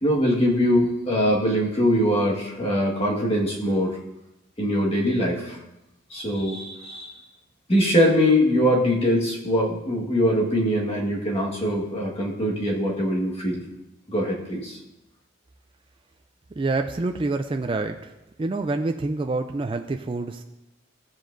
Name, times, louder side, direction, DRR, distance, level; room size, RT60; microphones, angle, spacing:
voice 1, 0.0-4.0 4.6-5.6 6.1-7.1 7.7-13.6 14.1-14.8, equal, 30° left, -2 dB, 1.5 m, -22 dB
voice 2, 16.6-18.0 18.4-20.4, right 3 dB, 25° right, 5 dB, 0.3 m, -26 dB
15.0 x 7.5 x 2.6 m, 0.93 s
head